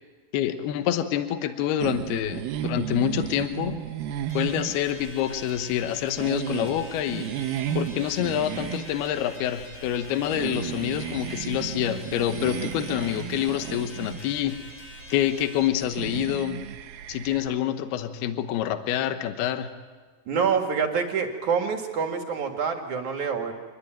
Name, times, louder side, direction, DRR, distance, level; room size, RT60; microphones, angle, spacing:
voice 1, 0.3-3.8 4.3-7.3 7.8-14.6 15.1-16.6 17.1-19.7, left 11 dB, 75° left, 8 dB, 3.0 m, -27 dB
sound 1, 1.8-17.6, right 10 dB, 70° right, 2.6 m, -34 dB
sound 2, 4.3-15.7, left 1 dB, 40° left, 8.1 m, -45 dB
voice 2, 20.3-23.5, right 6 dB, 55° right, 3 dB, 2.9 m, -26 dB
26.0 x 21.5 x 9.0 m, 1.4 s
omnidirectional pair, 4.8 m